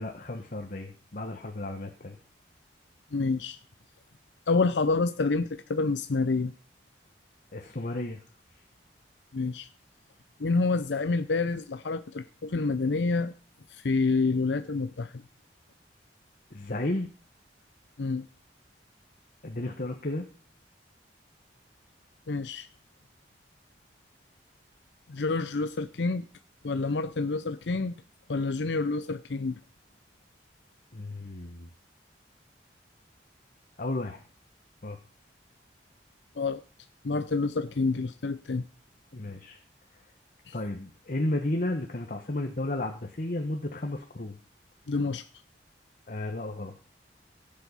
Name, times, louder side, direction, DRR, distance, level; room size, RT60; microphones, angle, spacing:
voice 1, 0.0-2.2 7.5-8.2 16.5-17.1 19.4-20.3 30.9-31.7 33.8-34.2 34.8-35.0 39.1-39.6 40.5-44.4 46.1-46.7, left 1 dB, 50° left, 4 dB, 1.4 m, -33 dB
voice 2, 3.1-3.6 4.5-6.5 9.3-9.7 10.4-13.3 13.7-15.2 18.0-18.3 22.3-22.7 25.1-26.3 26.6-28.0 28.3-29.6 36.4-36.6 37.0-38.6 40.5-40.6 44.9-45.3, left 3 dB, 80° left, 10 dB, 0.6 m, -28 dB
16.5 x 7.7 x 5.5 m, 0.41 s
head